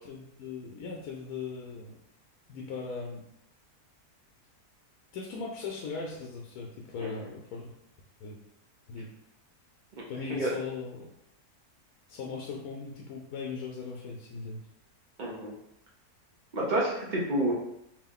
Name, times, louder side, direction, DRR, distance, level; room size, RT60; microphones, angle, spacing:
voice 1, 0.0-1.9 2.5-3.2 5.1-7.6 8.2-8.4 8.9-9.1 10.1-11.1 12.1-14.6, left 4 dB, 75° left, -1 dB, 1.0 m, -38 dB
voice 2, 15.2-15.5 16.5-17.5, right 1 dB, 60° right, -3 dB, 0.4 m, -29 dB
3.7 x 2.6 x 3.4 m, 0.80 s
omnidirectional pair, 1.6 m